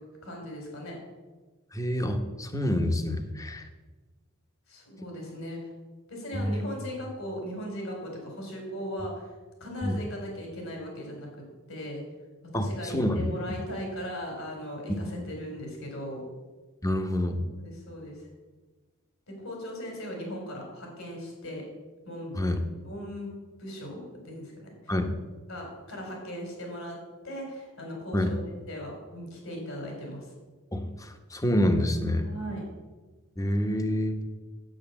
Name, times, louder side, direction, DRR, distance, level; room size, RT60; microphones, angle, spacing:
voice 1, 0.2-1.0 4.7-5.6 6.1-9.3 9.6-11.3 11.7-12.0 12.5-16.2 17.5-18.3 19.3-21.7 22.1-22.4 22.8-23.3 23.6-24.9 25.5-27.0 27.2-28.4 28.7-30.3 32.2-32.7, equal, 70° left, 0 dB, 4.4 m, -38 dB
voice 2, 1.7-3.6 6.3-6.6 9.8-10.0 12.5-13.6 16.8-17.4 22.4-22.6 24.9-25.1 28.1-28.3 30.7-32.3 33.4-34.2, left 1 dB, 15° left, 6 dB, 1.0 m, -27 dB
8.9 x 8.4 x 7.1 m, 1.3 s
head